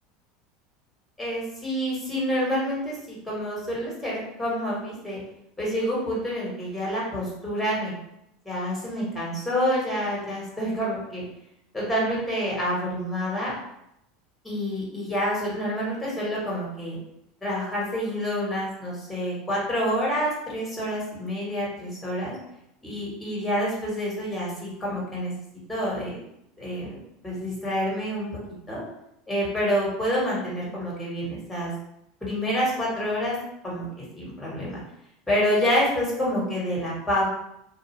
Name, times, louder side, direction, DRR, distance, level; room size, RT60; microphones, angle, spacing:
voice 1, 1.2-5.2 5.6-7.9 8.4-11.2 11.7-13.5 14.4-17.0 17.4-22.3 22.8-25.3 25.7-26.2 26.6-28.4 28.7-28.8 29.3-31.7 32.2-33.4 33.6-34.8 35.3-37.3, equal, 10° left, -5 dB, 1.4 m, -28 dB
2.3 x 2.2 x 3.1 m, 0.80 s
supercardioid pair, 100°, 0 cm